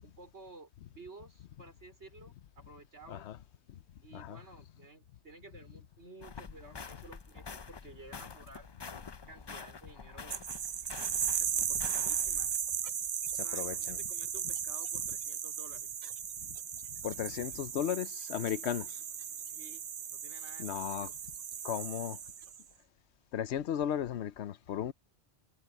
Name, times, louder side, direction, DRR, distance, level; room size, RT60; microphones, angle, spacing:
voice 1, 0.0-3.3 4.0-8.7 9.3-10.4 11.0-12.6 13.4-15.9 19.4-21.1, right 2 dB, 85° right, 5.1 m, -54 dB
sound 1, 6.2-12.6, left 5 dB, 35° left, 0.4 m, -47 dB
sound 2, 10.3-22.6, right 8 dB, 50° right, 0.4 m, -36 dB
voice 2, 13.5-14.0 17.0-19.0 20.6-21.1 21.6-22.2 23.3-24.9, left 10 dB, 75° left, 1.0 m, -35 dB
omnidirectional pair, 1.1 m